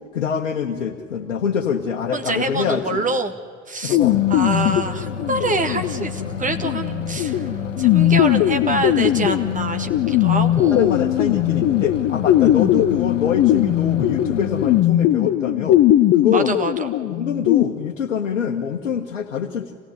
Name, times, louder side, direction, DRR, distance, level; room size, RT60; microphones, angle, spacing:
voice 1, 0.1-3.1 3.8-4.2 10.7-15.8 16.1-19.7, left 7 dB, 70° left, 0 dB, 1.5 m, -25 dB
voice 2, 2.1-3.3 3.7-4.0 4.3-7.5 7.8-11.1 16.3-16.9, right 3 dB, 20° right, 7 dB, 1.6 m, -25 dB
sound 1, 3.9-17.6, left 13 dB, 35° left, 0.8 m, -19 dB
sound 2, 4.0-14.8, left 4 dB, 85° left, 0.9 m, -31 dB
26.0 x 17.0 x 9.6 m, 2.1 s
figure-of-eight pair, 70°, 37 cm